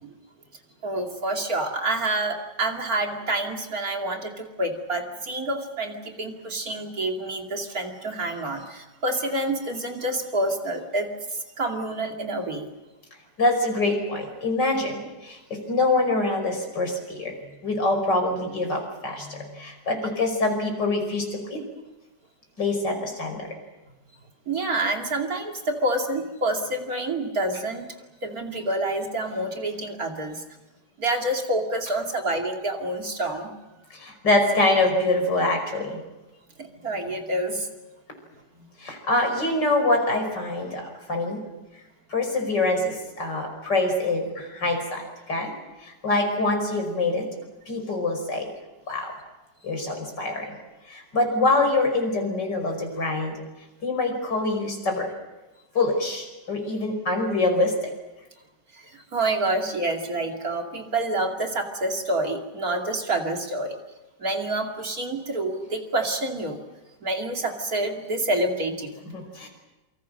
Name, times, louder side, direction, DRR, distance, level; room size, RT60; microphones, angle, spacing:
voice 1, 0.8-12.7 24.5-27.9 28.2-30.4 31.0-33.5 36.6-37.7 38.5-38.7 58.7-63.7 64.2-66.6 67.0-68.9, right 2 dB, 55° right, 2 dB, 3.1 m, -28 dB
voice 2, 13.4-17.3 17.6-21.6 22.6-23.6 33.9-36.0 38.8-41.4 42.1-45.5 45.8-47.3 47.7-48.5 48.9-49.1 49.6-50.6 50.9-53.4 53.8-55.1 55.7-57.9 69.1-69.5, left 2 dB, 80° left, 4 dB, 6.0 m, -25 dB
28.0 x 25.0 x 6.5 m, 1.1 s
omnidirectional pair, 1.9 m